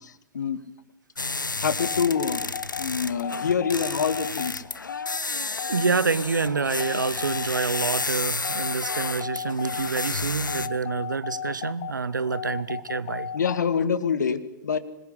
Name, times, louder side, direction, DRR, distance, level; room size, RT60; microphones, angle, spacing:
sound 1, 1.2-10.7, left 3 dB, 80° left, 1.0 m, -32 dB
voice 1, 1.6-2.4 2.8-4.6 13.3-14.8, left 6 dB, 65° left, 13 dB, 2.1 m, -25 dB
sound 2, 1.8-13.8, left 8 dB, 45° left, 2.2 m, -35 dB
voice 2, 5.7-13.3, right 4 dB, 75° right, 18 dB, 1.3 m, -27 dB
25.5 x 21.0 x 9.8 m, 0.86 s
figure-of-eight pair, 105°, 10 cm